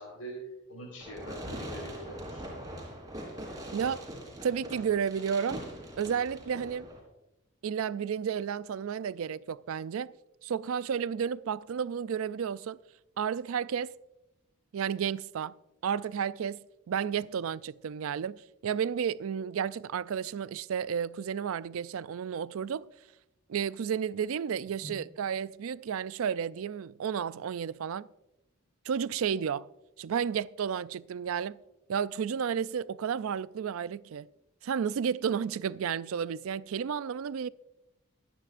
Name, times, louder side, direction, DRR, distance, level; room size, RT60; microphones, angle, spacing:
voice 1, 0.0-2.5 24.8-25.0, right 1 dB, 85° left, 4.1 m, -43 dB
Fireworks, 1.0-7.0, right 1 dB, 15° right, 3.6 m, -42 dB
voice 2, 3.7-4.1 4.4-5.6 6.0-6.9 7.6-10.1 10.4-12.8 13.2-13.9 14.7-15.5 15.8-22.9 23.5-28.1 28.8-29.7 30.0-31.6 31.9-34.3 34.6-37.5, right 7 dB, 65° right, 0.3 m, -32 dB
23.5 x 10.0 x 2.5 m
head